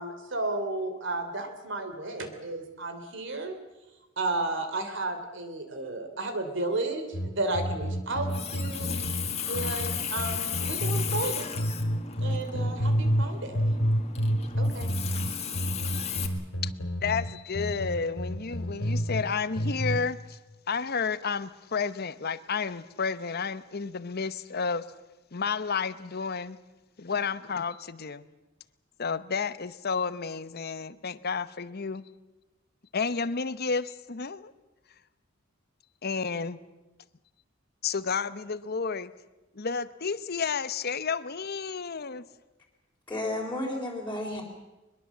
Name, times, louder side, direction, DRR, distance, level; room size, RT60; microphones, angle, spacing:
voice 1, 0.0-3.6 4.2-8.9 9.5-11.6 12.2-13.8 14.6-14.9, right 2 dB, 65° right, 3.3 m, -33 dB
sound 1, 7.1-11.2 11.6-13.3 13.5-19.2 19.6-20.0, equal, 85° left, 2.9 m, -29 dB
Water tap faucet, 8.1-16.3, left 7 dB, 30° left, 2.0 m, -35 dB
voice 2, 17.0-20.4 20.7-24.8 25.3-26.6 27.0-28.3 29.0-32.1 32.9-34.5 36.0-36.6 37.8-39.1 39.5-42.3, left 5 dB, 50° left, 0.9 m, -31 dB
voice 3, 43.1-44.4, left 1 dB, 10° left, 4.0 m, -32 dB
22.5 x 22.0 x 7.4 m
head